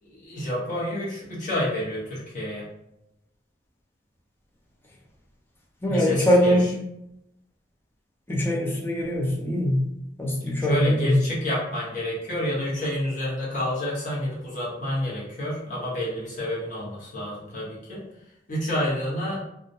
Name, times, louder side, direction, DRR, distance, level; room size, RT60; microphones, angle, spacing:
voice 1, 0.0-2.7 5.9-6.7 10.6-18.0 18.5-19.4, left 1 dB, 45° left, -7 dB, 0.9 m, -29 dB
voice 2, 5.8-6.7 8.3-9.9 10.2-11.2, equal, 10° left, -3 dB, 0.5 m, -22 dB
2.3 x 2.1 x 2.6 m, 0.84 s
head